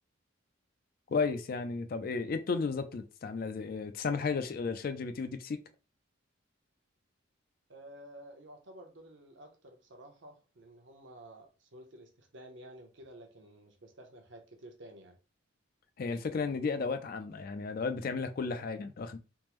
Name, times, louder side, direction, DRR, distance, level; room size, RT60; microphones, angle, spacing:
voice 1, 1.1-5.6 16.0-19.2, left 4 dB, 45° left, 0.3 m, -33 dB
voice 2, 7.7-15.2, right 1 dB, 60° right, 0.7 m, -52 dB
3.5 x 2.0 x 2.9 m
head